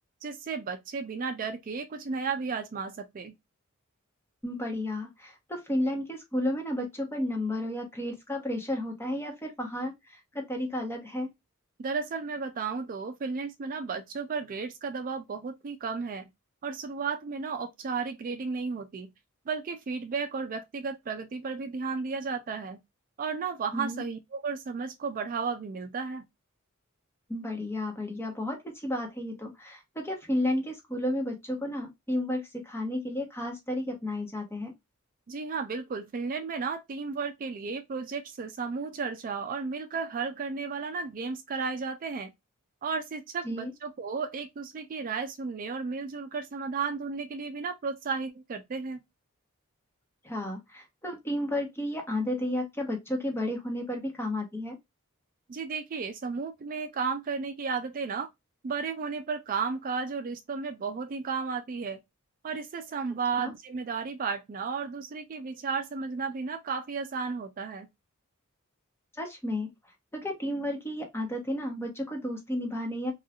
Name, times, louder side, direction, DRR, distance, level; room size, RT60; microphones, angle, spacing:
voice 1, 0.2-3.3 11.8-16.3 16.6-19.1 19.5-22.8 23.2-26.2 35.3-42.3 42.8-49.0 55.5-58.3 58.6-62.0 62.4-67.9, right 5 dB, 40° right, 0.4 m, -33 dB
voice 2, 4.4-11.3 23.7-24.0 27.3-34.7 43.4-43.7 50.2-54.8 63.4-63.5 69.2-69.7 70.1-73.1, left 1 dB, 10° left, 1.0 m, -32 dB
3.0 x 2.3 x 2.3 m
head